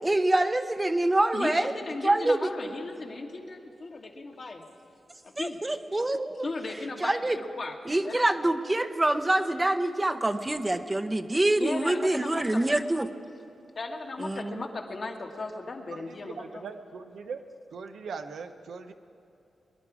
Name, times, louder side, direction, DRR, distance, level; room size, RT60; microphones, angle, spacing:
voice 1, 0.0-1.7 2.0-2.4 5.4-6.5 7.0-7.4 7.9-13.1 14.2-14.6, right 1 dB, 25° right, 9 dB, 0.9 m, -25 dB
voice 2, 1.3-4.7 5.2-5.6 6.4-7.8 8.0-8.2 11.6-12.6 13.8-16.6, left 3 dB, 55° left, 1 dB, 1.9 m, -36 dB
voice 3, 15.9-17.4 17.7-18.9, right 5 dB, 80° right, 6 dB, 0.8 m, -40 dB
22.5 x 11.0 x 4.9 m, 2.8 s
supercardioid pair, 50°, 0 cm